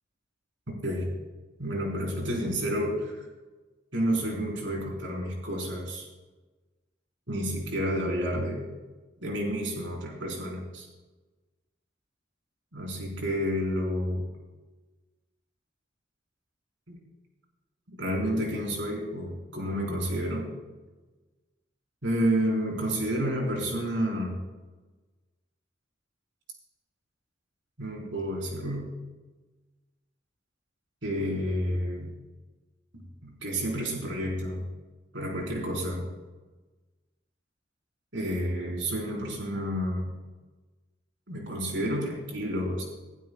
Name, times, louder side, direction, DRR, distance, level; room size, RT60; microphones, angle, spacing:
voice 1, 1.6-3.2 3.9-6.1 7.3-8.6 9.2-10.9 12.7-14.2 16.9-17.0 17.9-20.5 22.0-24.4 27.8-29.0 31.0-32.1 33.2-34.7 35.1-36.0 38.1-40.1 41.3-42.8, equal, 85° right, -1 dB, 4.4 m, -30 dB
20.5 x 12.0 x 2.4 m, 1.2 s
head